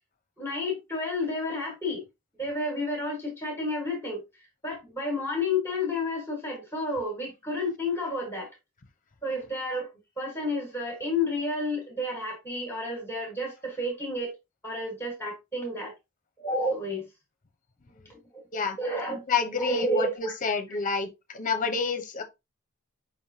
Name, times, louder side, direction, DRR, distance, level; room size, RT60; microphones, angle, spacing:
voice 1, 0.4-2.0 2.4-4.2 4.6-8.5 9.2-9.9 10.2-14.3 14.6-15.9 16.4-17.0 18.1-18.4 18.8-19.2 19.6-20.3 20.7-20.8, left 2 dB, 10° left, 1.5 m, -31 dB
voice 2, 19.3-21.1 21.3-22.2, left 4 dB, 40° left, 0.8 m, -28 dB
5.2 x 3.5 x 2.8 m
head